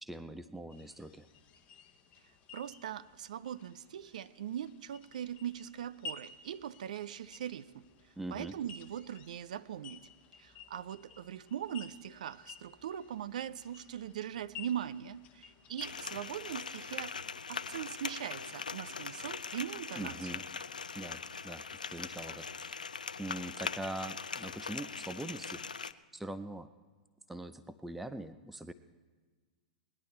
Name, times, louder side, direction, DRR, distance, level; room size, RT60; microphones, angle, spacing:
voice 1, 0.0-1.3 8.2-8.6 20.0-20.5 20.9-22.8 23.2-25.7 26.1-26.7 27.3-28.7, right 1 dB, 5° right, 0.4 m, -42 dB
sound 1, 0.7-16.6, left 4 dB, 30° left, 0.9 m, -53 dB
voice 2, 2.5-7.8 8.3-10.1 10.4-17.2 17.5-20.3, right 10 dB, 65° right, 0.4 m, -41 dB
sound 2, 15.8-25.9, left 5 dB, 80° left, 0.4 m, -41 dB
19.0 x 11.0 x 4.3 m
figure-of-eight pair, 100°, 4 cm